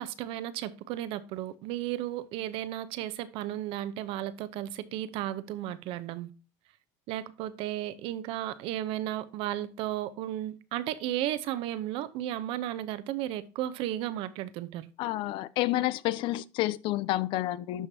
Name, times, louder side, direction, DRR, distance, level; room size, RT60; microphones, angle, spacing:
voice 1, 0.0-6.3 7.1-14.9, right 13 dB, 55° right, 0.8 m, -34 dB
voice 2, 15.0-17.9, left 15 dB, 50° left, 0.5 m, -29 dB
12.0 x 5.2 x 2.8 m
cardioid pair, 150°, 11 cm